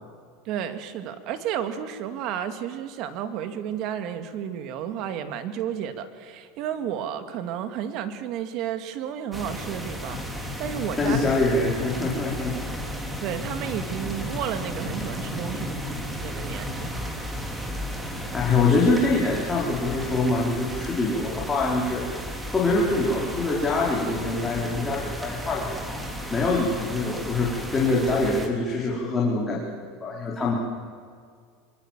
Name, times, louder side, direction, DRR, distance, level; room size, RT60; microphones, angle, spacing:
voice 1, 0.5-11.3 13.2-17.1, right 9 dB, 55° right, 8 dB, 2.3 m, -32 dB
sound 1, 9.3-28.5, equal, 10° right, 3.3 m, -34 dB
voice 2, 11.0-12.5 18.0-22.0 22.5-26.0 26.3-30.5, left 3 dB, 20° left, -4 dB, 4.4 m, -24 dB
24.5 x 24.0 x 7.5 m, 2.1 s
supercardioid pair, 120°, 0 cm